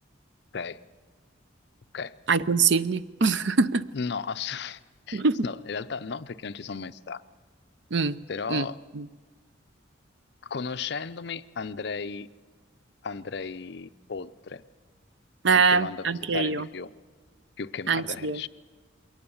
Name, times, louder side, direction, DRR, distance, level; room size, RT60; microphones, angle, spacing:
voice 1, 2.3-3.8 5.1-5.4 7.9-8.2 8.5-8.7 8.9-9.1 15.4-16.7 17.9-18.4, right 4 dB, 65° right, 0.6 m, -23 dB
voice 2, 3.9-4.8 5.1-7.2 8.3-8.8 10.4-12.3 13.0-14.6 15.5-16.9 17.6-18.5, left 5 dB, 60° left, 0.6 m, -35 dB
22.0 x 18.5 x 7.1 m
head